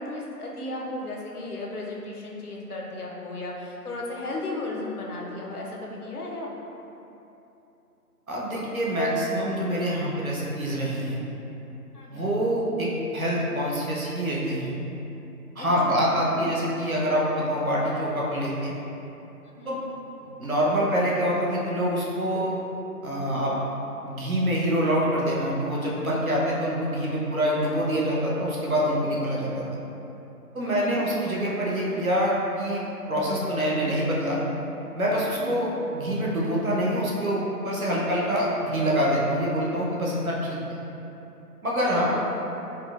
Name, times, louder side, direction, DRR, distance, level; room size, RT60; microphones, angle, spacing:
voice 1, 0.0-6.5 11.9-12.3 15.6-16.6 19.4-19.8 30.6-31.1 35.1-35.5 41.6-42.3, left 2 dB, 70° left, -2 dB, 0.6 m, -35 dB
voice 2, 8.3-11.2 12.1-14.7 15.6-18.7 19.7-19.8 20.2-22.5 23.0-23.5 24.0-29.6 30.5-34.4 34.9-40.6 41.6-42.1, equal, 60° right, -5 dB, 0.7 m, -25 dB
4.2 x 2.1 x 2.3 m, 2.9 s
figure-of-eight pair, 170°, 47 cm